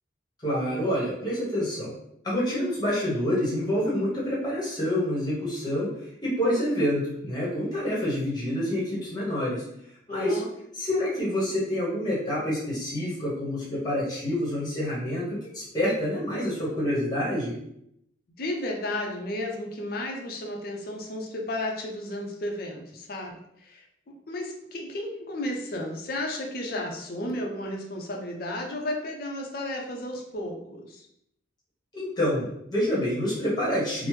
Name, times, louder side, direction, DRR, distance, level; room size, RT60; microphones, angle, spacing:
voice 1, 0.4-1.9 2.2-5.9 6.2-9.6 10.1-10.4 10.8-17.6 31.9-34.1, equal, 20° left, -7 dB, 1.1 m, -27 dB
voice 2, 10.1-10.5 18.4-23.8 24.3-31.1, left 1 dB, 50° left, 1 dB, 0.5 m, -33 dB
3.1 x 2.0 x 3.1 m, 0.76 s
head